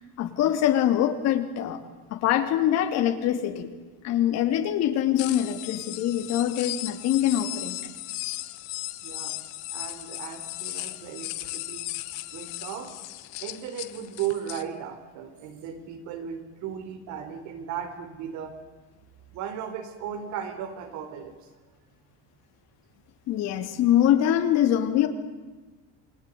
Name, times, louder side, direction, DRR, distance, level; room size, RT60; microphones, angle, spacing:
voice 1, 0.2-1.8 2.1-3.7 4.0-7.8 23.3-25.1, left 11 dB, 45° left, 7 dB, 2.9 m, -24 dB
sound 1, 5.2-14.6, left 19 dB, 70° left, 1.6 m, -36 dB
voice 2, 9.0-9.4 9.7-11.9 12.3-12.9 13.4-18.5 19.3-21.3, right 8 dB, 55° right, 8 dB, 4.1 m, -36 dB
28.5 x 22.5 x 9.4 m, 1.3 s
cardioid pair, 175°, 35 cm